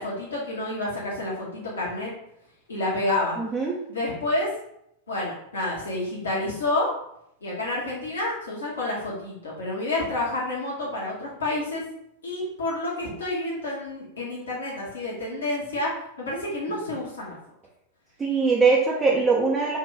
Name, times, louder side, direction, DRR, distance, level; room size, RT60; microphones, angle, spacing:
voice 1, 0.0-2.1 2.7-3.4 3.9-4.5 5.1-6.9 7.4-11.8 12.2-17.3, left 2 dB, 70° left, -5 dB, 1.2 m, -29 dB
voice 2, 3.4-3.8 18.2-19.8, right 4 dB, 20° right, -3 dB, 0.6 m, -21 dB
4.2 x 2.5 x 3.7 m, 0.76 s
figure-of-eight pair, 90°, 0 cm